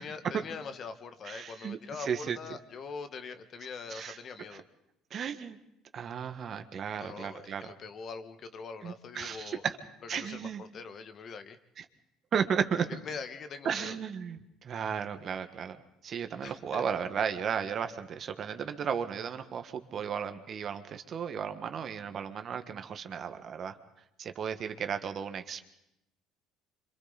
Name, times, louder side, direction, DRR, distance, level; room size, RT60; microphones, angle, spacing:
voice 1, 0.0-4.6 7.0-9.6 10.1-11.6 12.8-14.0 16.4-16.8, left 5 dB, 50° left, 9 dB, 1.5 m, -43 dB
voice 2, 1.2-2.4 3.9-4.2 4.5-4.6 5.1-5.6 5.9-7.7 8.8-9.8 10.1-10.6 11.8-11.9 12.3-12.9 13.6-15.8 16.0-23.8 24.2-25.7, right 7 dB, 50° right, 8 dB, 1.5 m, -34 dB
27.0 x 25.5 x 4.1 m, 0.83 s
supercardioid pair, 75°, 0 cm